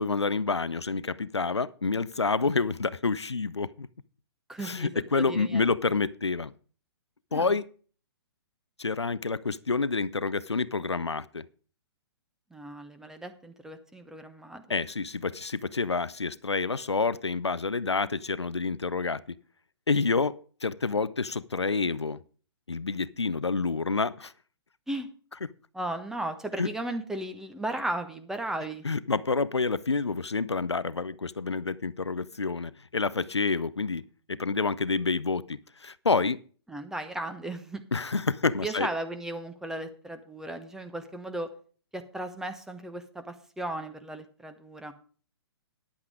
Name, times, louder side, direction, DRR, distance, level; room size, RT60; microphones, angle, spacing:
voice 1, 0.0-3.9 4.6-6.5 7.3-7.7 8.8-11.4 14.7-19.4 19.9-22.2 22.7-24.3 26.6-26.7 28.8-36.4 37.9-38.9, left 4 dB, 90° left, 18 dB, 0.6 m, -28 dB
voice 2, 4.5-5.7 7.3-7.5 12.5-14.6 24.9-25.1 25.7-28.9 36.7-37.8 38.6-41.5 41.9-44.9, right 1 dB, 5° right, 8 dB, 1.0 m, -36 dB
10.0 x 8.5 x 4.9 m, 0.41 s
figure-of-eight pair, 125°, 14 cm